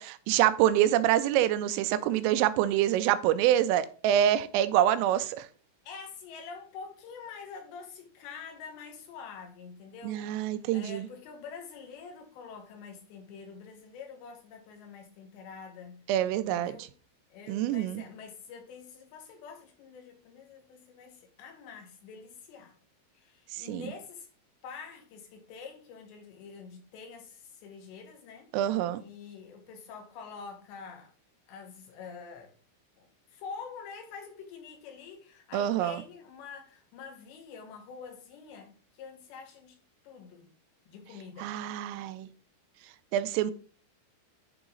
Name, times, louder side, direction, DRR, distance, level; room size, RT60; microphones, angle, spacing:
voice 1, 0.0-5.5 10.0-11.1 16.1-16.8 17.5-18.0 23.5-23.9 28.5-29.0 35.5-36.0 41.4-42.3 43.1-43.5, right 12 dB, 85° right, 3.2 m, -26 dB
voice 2, 5.8-10.2 10.7-16.0 16.5-16.9 17.3-22.7 23.1-24.3 24.6-28.5 29.0-31.1 31.5-32.5 33.0-39.8 40.0-40.5 40.9-41.5, left 5 dB, 70° left, 3.3 m, -46 dB
11.0 x 3.9 x 3.8 m
omnidirectional pair, 5.7 m